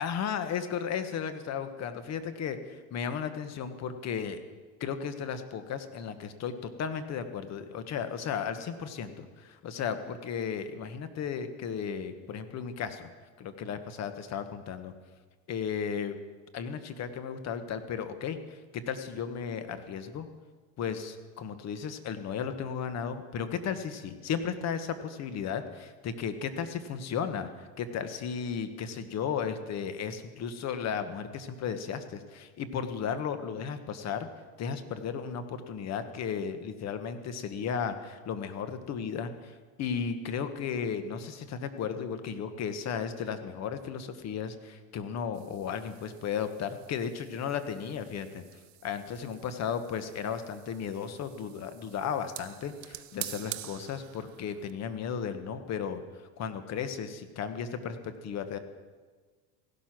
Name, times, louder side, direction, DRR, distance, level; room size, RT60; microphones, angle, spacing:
voice 1, 0.0-4.4 4.8-13.1 13.4-14.9 15.5-16.2 16.5-20.3 20.8-25.6 26.0-34.3 34.6-48.4 48.8-56.0 56.4-58.6, left 7 dB, 40° left, 10 dB, 1.4 m, -35 dB
sound 1, 45.3-54.7, right 16 dB, 45° right, 0.8 m, -47 dB
16.0 x 11.5 x 6.1 m, 1.4 s
supercardioid pair, 110°, 40 cm